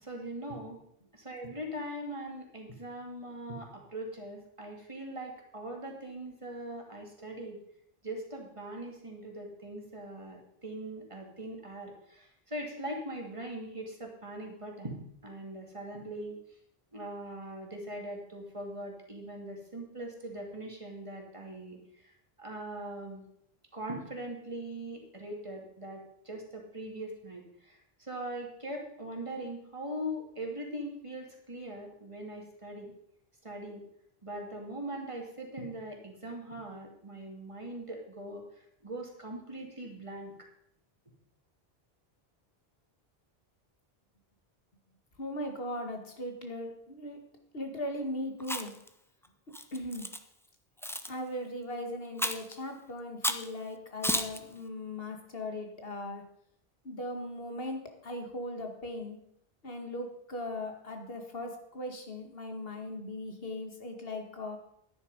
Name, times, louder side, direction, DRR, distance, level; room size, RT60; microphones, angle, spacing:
voice 1, 0.0-0.8 1.1-7.6 8.0-16.4 16.9-21.8 22.4-23.3 23.7-32.9 33.4-33.8 34.2-38.4 38.8-40.3, right 1 dB, 30° right, 1 dB, 2.3 m, -41 dB
voice 2, 45.2-47.2 47.5-48.7 49.7-50.0 51.1-56.2 56.9-59.2 59.6-64.6, left 1 dB, 65° left, 4 dB, 2.0 m, -38 dB
Chewing mastication, 48.4-48.9 49.5-50.2 50.8-51.1 52.2-52.5 53.2-53.5 54.0-54.4, equal, 5° left, 0.6 m, -32 dB
11.0 x 9.8 x 5.3 m, 0.72 s
omnidirectional pair, 1.0 m